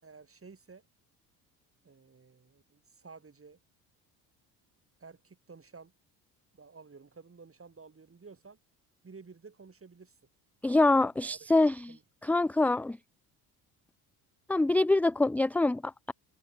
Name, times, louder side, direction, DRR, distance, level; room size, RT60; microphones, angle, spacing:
voice 1, 0.0-0.8 1.8-3.6 5.0-5.9 6.5-8.6 9.0-10.2 11.0-11.4 11.9-12.0, right 4 dB, 25° right, 5.4 m, -52 dB
voice 2, 10.6-11.8 12.2-13.0 14.5-16.1, left 2 dB, 5° left, 0.4 m, -25 dB
hypercardioid pair, 60°, 49 cm